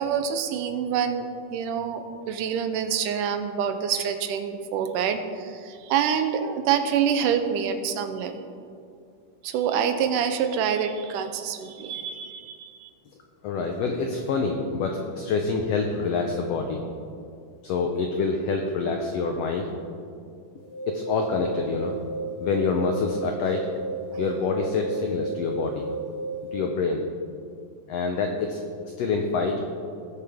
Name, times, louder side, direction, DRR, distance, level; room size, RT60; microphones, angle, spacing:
voice 1, 0.0-8.5 9.4-12.9, right 7 dB, 85° right, 8 dB, 2.2 m, -26 dB
voice 2, 13.4-16.8 17.6-19.7 20.9-22.0 22.4-23.7 24.2-25.8 26.5-27.0 27.9-29.6, left 4 dB, 85° left, 3 dB, 1.4 m, -26 dB
sound 1, 20.6-26.6, right 3 dB, 45° left, 2.7 m, -33 dB
19.0 x 6.7 x 3.6 m, 2.4 s
omnidirectional pair, 3.8 m